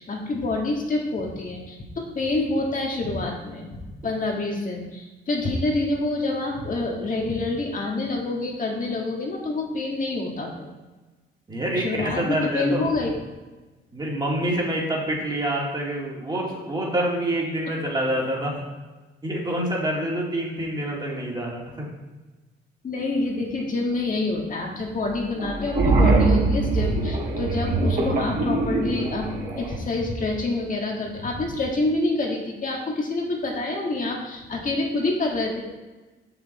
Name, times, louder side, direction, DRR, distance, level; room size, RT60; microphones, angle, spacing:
voice 1, 0.0-10.7 11.8-13.1 22.8-35.6, left 2 dB, 40° left, 0 dB, 1.9 m, -27 dB
voice 2, 11.5-13.0 13.9-18.6 19.2-21.9, right 1 dB, 20° right, -3 dB, 2.5 m, -27 dB
sound 1, 25.4-29.8, right 3 dB, 45° right, 2.6 m, -22 dB
6.8 x 6.0 x 4.3 m, 1.2 s
cardioid pair, 90°, 20 cm